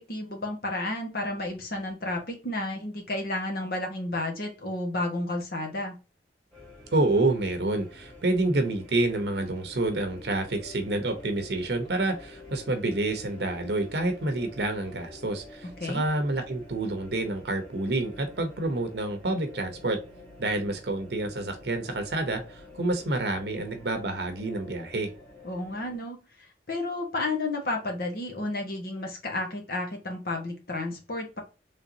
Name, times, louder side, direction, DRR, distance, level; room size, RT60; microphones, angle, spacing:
voice 1, 0.0-6.0 15.8-16.0 25.4-31.4, left 2 dB, 55° left, 2 dB, 1.2 m, -32 dB
sound 1, 6.5-26.0, left 1 dB, 5° left, 1.6 m, -49 dB
voice 2, 6.9-20.0 20.4-25.1, right 2 dB, 65° right, 6 dB, 0.8 m, -28 dB
sound 2, 10.5-15.6, left 6 dB, 80° left, 1.4 m, -51 dB
3.7 x 3.3 x 2.7 m, 0.31 s
head